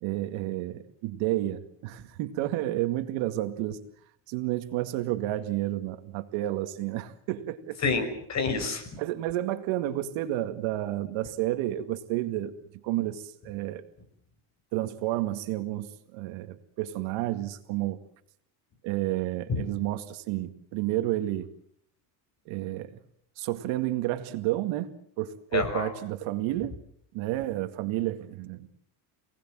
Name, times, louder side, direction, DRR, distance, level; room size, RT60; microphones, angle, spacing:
voice 1, 0.0-3.8 4.3-7.8 9.0-12.6 12.8-13.8 14.7-18.0 18.8-21.5 22.5-22.9 23.4-26.8 27.1-28.7, right 15 dB, 75° right, 2.2 m, -31 dB
voice 2, 7.8-9.0 19.5-19.6 25.5-25.9, left 4 dB, 35° left, 5.7 m, -28 dB
28.0 x 19.0 x 7.7 m
cardioid pair, 130°, 48 cm